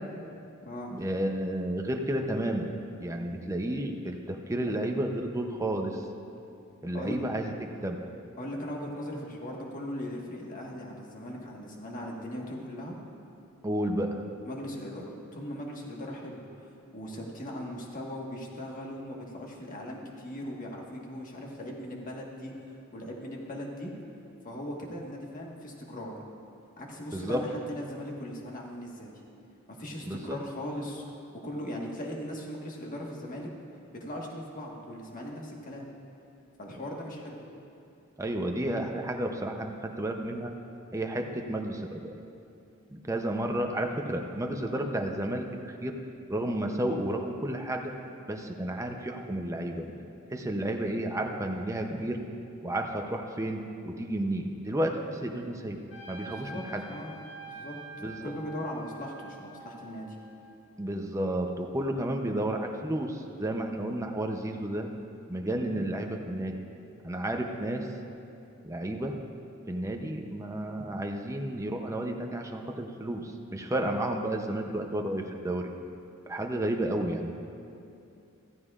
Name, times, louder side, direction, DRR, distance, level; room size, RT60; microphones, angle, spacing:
voice 1, 0.9-2.7 3.0-6.0 6.8-7.5 7.8-8.0 13.6-14.2 27.1-27.4 30.1-30.4 38.2-40.5 40.9-42.1 43.0-45.9 46.3-47.8 48.3-49.9 50.3-52.2 52.6-55.8 56.1-56.8 58.0-58.3 60.8-64.9 65.3-66.5 67.0-67.9 68.6-69.2 69.7-75.7 76.3-77.3, right 1 dB, 15° right, 3 dB, 0.6 m, -31 dB
voice 2, 8.4-13.0 14.4-16.4 16.9-22.5 22.9-23.9 24.4-26.2 26.8-29.2 29.7-31.0 31.4-33.5 34.0-35.9 36.6-37.4 56.2-57.2 57.4-57.7 58.2-60.2 65.6-65.9, equal, 40° left, -1 dB, 1.5 m, -39 dB
Trumpet, 55.9-60.6, right 2 dB, 55° left, 2.2 m, -46 dB
14.5 x 14.5 x 2.5 m, 2.7 s
head